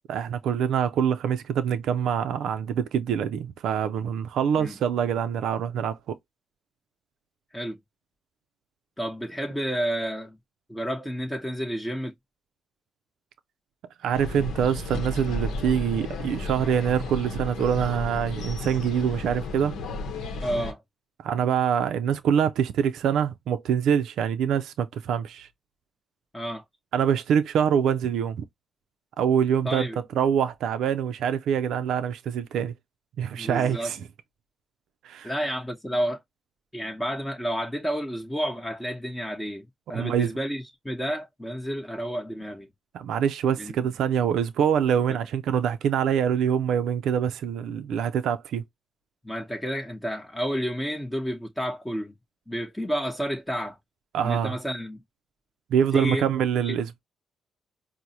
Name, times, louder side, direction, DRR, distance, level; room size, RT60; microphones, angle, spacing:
voice 1, 0.1-6.1 14.0-19.7 21.2-25.5 26.9-28.4 29.2-29.9 30.2-32.7 33.2-34.0 35.0-35.3 39.9-40.3 42.9-48.6 54.1-54.6 55.7-57.0, right 8 dB, 75° right, 0.3 m, -25 dB
voice 2, 9.0-10.4 10.7-12.1 20.4-20.8 26.3-26.6 29.6-30.0 33.3-33.9 35.2-36.2 36.7-42.7 43.6-43.7 45.1-45.2 49.2-52.1 52.5-53.8 54.2-55.0 55.9-56.3 56.6-56.8, equal, 10° left, 0.8 m, -30 dB
sound 1, 14.1-20.7, left 2 dB, 75° left, 0.8 m, -33 dB
4.6 x 2.0 x 2.7 m
supercardioid pair, 65°, 0 cm